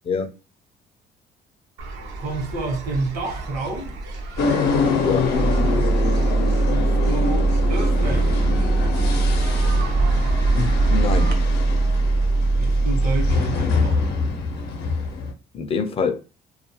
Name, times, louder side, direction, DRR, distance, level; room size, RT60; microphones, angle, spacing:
sound 1, 1.8-11.3, right 2 dB, 85° right, 0.6 m, -30 dB
voice 1, 2.2-4.0 6.7-8.5 12.6-14.1, right 2 dB, 65° right, 0.9 m, -29 dB
sound 2, 4.4-15.3, left 4 dB, 85° left, 0.6 m, -25 dB
voice 2, 5.0-5.3 10.5-11.4 15.5-16.2, left 5 dB, 35° left, 0.4 m, -24 dB
sound 3, 5.3-13.3, right 3 dB, 40° right, 0.4 m, -21 dB
2.3 x 2.2 x 2.8 m
cardioid pair, 110°, 17 cm